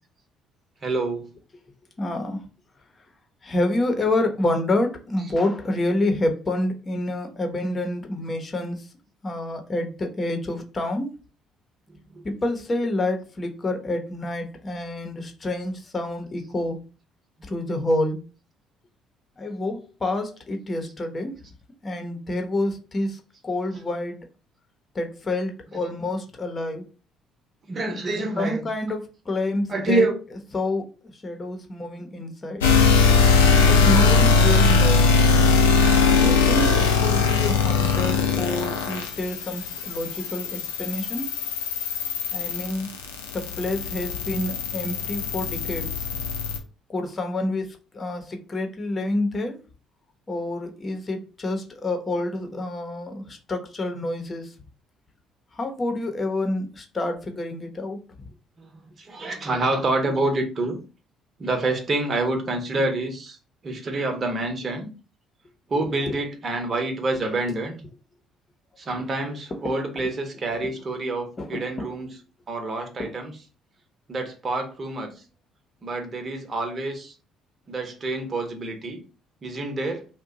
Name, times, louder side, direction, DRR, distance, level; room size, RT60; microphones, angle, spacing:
voice 1, 0.8-1.2 5.2-5.3 11.9-12.2 16.4-16.5 20.9-21.0 23.7-23.8 25.7-26.2 27.7-28.7 29.7-30.1 58.6-60.8 61.4-63.4 63.6-64.9 65.7-67.8 68.8-72.2 72.5-73.4 74.1-75.1 75.8-77.1 77.7-79.0 79.4-80.1, right 2 dB, 40° right, 1.0 m, -27 dB
voice 2, 2.0-2.4 3.4-8.9 9.2-11.1 12.2-16.8 17.5-18.2 19.4-21.3 21.8-24.2 24.9-26.9 28.4-30.1 30.5-30.9 31.2-32.7 33.6-35.1 36.1-41.3 42.3-42.9 43.3-46.1 46.9-49.6 50.3-54.5 55.5-58.3 65.8-66.2 69.6-69.7 71.4-71.9 73.0-73.1, left 2 dB, 35° left, 0.8 m, -28 dB
sound 1, 32.6-46.6, left 5 dB, 85° left, 0.5 m, -20 dB
2.6 x 2.2 x 3.8 m
hypercardioid pair, 50°, 0 cm